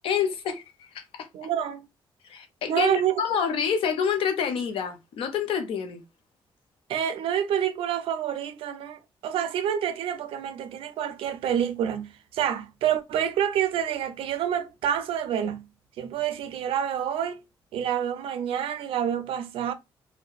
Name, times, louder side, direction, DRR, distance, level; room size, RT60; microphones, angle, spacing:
voice 1, 0.0-1.3 2.3-6.0, left 7 dB, 85° left, 0.6 m, -28 dB
voice 2, 1.3-1.8 2.7-3.2 6.9-15.7 16.0-17.4 17.7-19.7, right 9 dB, 85° right, 0.4 m, -28 dB
2.7 x 2.1 x 2.3 m
cardioid pair, 110°, 9 cm